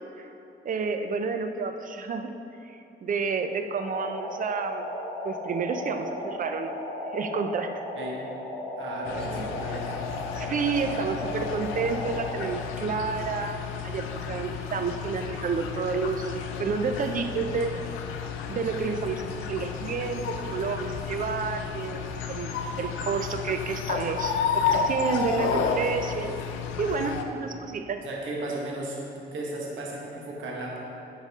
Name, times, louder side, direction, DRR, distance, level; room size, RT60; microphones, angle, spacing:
voice 1, 0.6-2.3 2.6-4.9 5.2-6.8 7.1-7.7 9.2-9.5 10.3-17.7 18.5-26.4 26.8-28.1, right 5 dB, 45° right, 7 dB, 0.5 m, -30 dB
sound 1, 3.8-12.6, left 1 dB, 65° left, 1.5 m, -36 dB
voice 2, 8.8-9.9 28.0-30.8, right 2 dB, 75° right, -3 dB, 1.4 m, -35 dB
sound 2, 9.0-27.2, left 6 dB, 90° left, 0.5 m, -32 dB
10.0 x 4.0 x 3.6 m, 2.9 s
cardioid pair, 90°, 20 cm